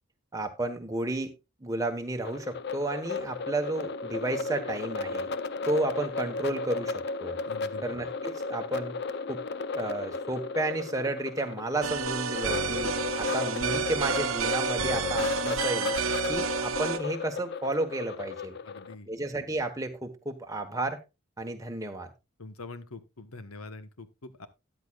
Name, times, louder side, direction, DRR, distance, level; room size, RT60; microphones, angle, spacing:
voice 1, 0.3-1.3 1.6-5.3 5.7-7.4 7.8-9.0 9.3-9.4 9.7-16.0 16.3-18.6 19.1-21.0 21.4-22.1, right 2 dB, 15° right, 4 dB, 1.2 m, -32 dB
sound 1, 2.2-18.9, left 4 dB, 50° left, 0.6 m, -34 dB
voice 2, 7.4-7.9 18.6-19.1 22.4-24.5, left 3 dB, 90° left, 11 dB, 1.2 m, -44 dB
sound 2, 11.8-17.0, right 5 dB, 70° right, 0.9 m, -30 dB
13.5 x 9.8 x 2.4 m, 0.25 s
head